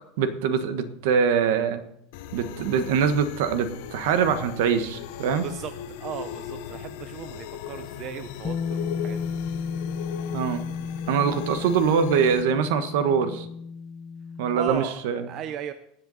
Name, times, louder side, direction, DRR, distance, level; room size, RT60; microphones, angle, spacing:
voice 1, 0.2-1.8 2.3-5.4 10.3-10.6 11.1-13.5 14.4-15.2, right 6 dB, 65° right, 10 dB, 1.3 m, -23 dB
sound 1, 2.1-12.4, left 10 dB, 60° left, 0.9 m, -38 dB
voice 2, 6.0-9.2 11.3-11.4 14.6-15.0 15.3-15.7, right 10 dB, 35° right, 10 dB, 0.6 m, -36 dB
Bass guitar, 8.4-14.7, left 5 dB, 20° left, 0.5 m, -33 dB
20.5 x 7.9 x 4.1 m, 0.74 s
supercardioid pair, 175°, 0 cm